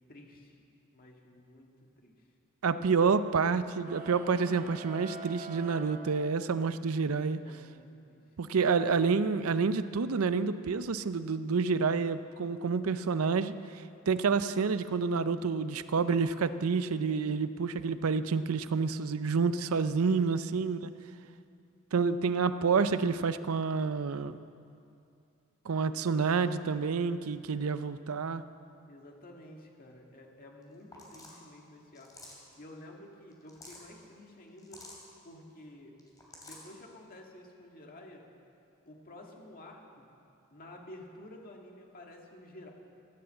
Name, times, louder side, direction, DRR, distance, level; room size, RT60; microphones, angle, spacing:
voice 1, 0.1-0.6 0.9-2.3 7.4-8.2 20.1-20.5 28.9-34.8 35.2-36.0 36.4-38.2 38.8-40.0 40.5-42.7, left 1 dB, 45° left, 0 dB, 1.9 m, -51 dB
voice 2, 2.6-7.4 8.4-13.5 14.1-20.9 21.9-24.4 25.7-28.4, right 5 dB, 90° right, 13 dB, 0.5 m, -28 dB
sound 1, 3.8-6.8, right 3 dB, 40° right, 0.9 m, -45 dB
sound 2, 30.6-30.7 30.9-31.4 31.9-32.5 33.3-33.9 34.6-35.0 36.0-36.7, left 2 dB, 20° left, 2.7 m, -50 dB
15.0 x 9.5 x 7.7 m, 2.5 s
head